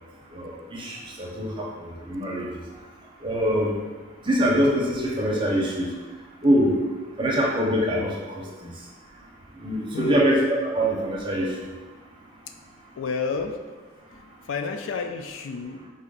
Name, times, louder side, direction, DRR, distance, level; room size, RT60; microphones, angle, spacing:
voice 1, 0.3-2.5 3.2-3.7 4.2-5.9 6.4-6.8 7.2-8.7 9.6-11.6, equal, 25° right, -3 dB, 0.7 m, -24 dB
voice 2, 9.9-10.3 13.0-13.6 14.1-15.9, left 5 dB, 70° left, 6 dB, 0.4 m, -31 dB
4.2 x 2.5 x 3.8 m, 1.3 s
head